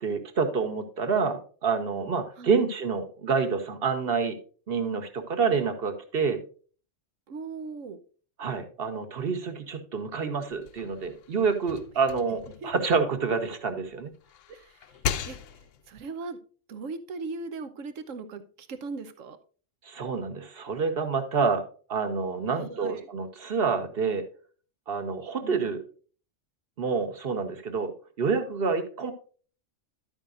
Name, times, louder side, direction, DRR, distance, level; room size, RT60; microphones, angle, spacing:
voice 1, 0.0-4.3 4.7-6.4 8.4-14.1 19.8-21.6 21.9-24.2 24.9-25.8 26.8-27.9 28.2-29.1, right 5 dB, 50° right, 7 dB, 1.3 m, -28 dB
voice 2, 2.4-2.7 7.3-8.0 12.6-12.7 14.5-14.9 15.2-16.4 16.7-19.4 22.5-23.1 25.4-25.7, right 4 dB, 85° right, 10 dB, 1.2 m, -39 dB
sound 1, 10.5-13.7 14.1-15.9, left 8 dB, 80° left, 1.0 m, -37 dB
11.5 x 8.8 x 2.5 m, 0.40 s
omnidirectional pair, 1.3 m